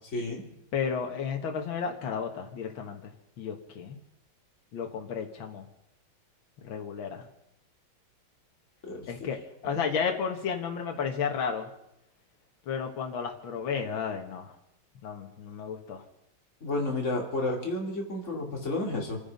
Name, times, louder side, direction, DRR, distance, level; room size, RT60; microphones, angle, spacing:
voice 1, 0.1-0.4 8.8-9.3 16.6-19.2, left 2 dB, 35° left, -1 dB, 3.0 m, -31 dB
voice 2, 0.7-4.0 4.7-5.7 6.6-7.3 9.1-11.7 12.7-14.5 15.0-16.0, left 6 dB, 70° left, 3 dB, 2.2 m, -33 dB
27.0 x 9.7 x 5.3 m, 0.83 s
omnidirectional pair, 2.3 m